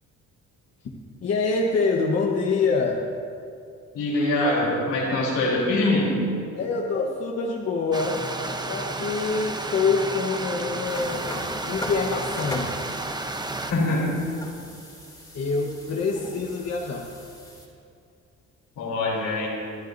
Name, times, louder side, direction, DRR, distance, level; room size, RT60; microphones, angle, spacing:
voice 1, 1.2-3.0 6.5-11.3 11.6-12.7 15.3-17.1, left 4 dB, 55° left, -1 dB, 1.3 m, -25 dB
voice 2, 3.9-6.3 13.5-14.1 18.8-19.5, left 2 dB, 85° left, -4 dB, 3.7 m, -23 dB
Stream, 7.9-13.7, right 2 dB, 15° right, 0.8 m, -32 dB
sound 1, 10.9-17.7, equal, 10° left, 2.8 m, -39 dB
27.5 x 10.0 x 2.7 m, 2.4 s
cardioid pair, 90°, 30 cm